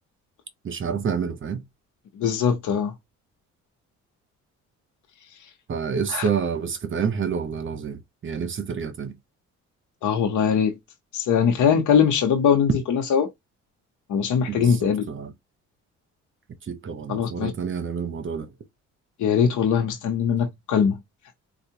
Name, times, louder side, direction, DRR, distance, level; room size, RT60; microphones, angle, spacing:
voice 1, 0.6-1.6 5.7-9.2 14.5-15.3 16.7-18.5, right 6 dB, 40° right, 0.9 m, -28 dB
voice 2, 2.2-2.9 6.1-6.3 10.0-10.7 11.1-13.3 14.1-15.1 17.1-17.5 19.2-21.0, left 7 dB, 75° left, 0.9 m, -21 dB
4.4 x 2.3 x 2.8 m
cardioid pair, 90°, 30 cm